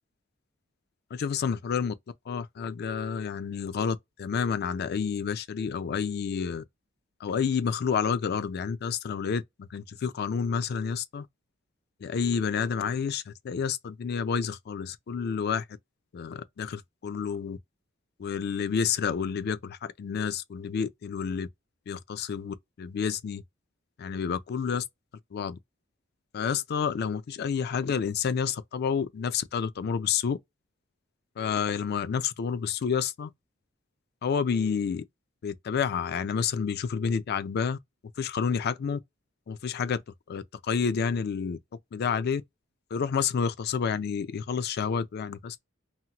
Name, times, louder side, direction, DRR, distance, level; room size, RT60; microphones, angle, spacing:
voice 1, 1.1-1.9 2.3-6.6 7.2-9.4 9.7-11.3 12.0-15.6 16.1-17.6 18.2-21.5 21.9-23.4 24.0-24.8 25.3-25.6 26.3-30.4 31.4-33.3 34.2-35.0 35.4-37.8 38.2-39.0 39.5-40.0 40.3-41.6 41.9-42.4 42.9-45.6, left 6 dB, 50° left, 0.3 m, -29 dB
2.8 x 2.1 x 2.8 m
head